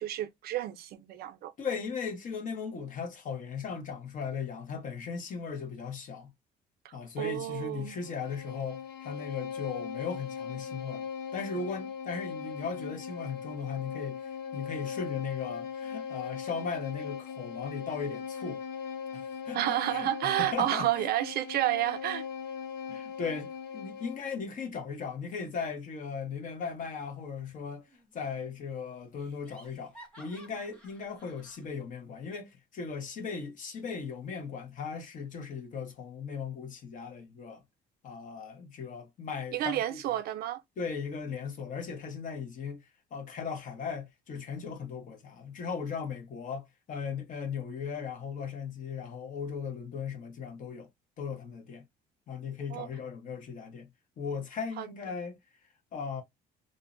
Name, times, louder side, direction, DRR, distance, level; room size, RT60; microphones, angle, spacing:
voice 1, 0.0-1.5 6.8-8.0 19.5-22.3 39.5-40.6 52.7-52.9 54.8-54.9, right 13 dB, 65° right, 0.5 m, -30 dB
voice 2, 1.6-6.3 6.9-11.1 11.3-18.6 19.1-20.9 22.9-37.6 38.0-40.2 40.8-50.9 51.2-51.8 52.3-53.9 54.2-55.4 55.9-56.2, left 5 dB, 50° left, 0.9 m, -37 dB
Bowed string instrument, 7.7-24.3, left 7 dB, 80° left, 0.7 m, -39 dB
Laughter, 27.9-28.4 28.7-28.8 29.2-31.7, equal, 5° left, 1.0 m, -55 dB
2.6 x 2.0 x 2.5 m
cardioid pair, 110°, 17 cm